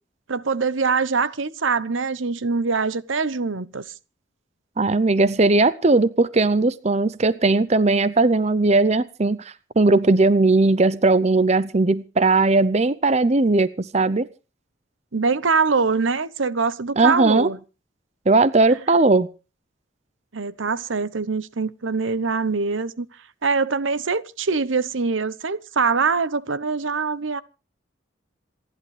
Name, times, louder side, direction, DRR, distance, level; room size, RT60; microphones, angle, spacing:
voice 1, 0.3-3.8 15.1-17.6 18.7-18.8 20.3-23.1 23.4-27.4, right 4 dB, 80° right, 0.9 m, -23 dB
voice 2, 4.8-14.3 17.0-17.5 18.3-19.3, right 3 dB, 35° right, 0.7 m, -18 dB
27.5 x 11.5 x 3.3 m
head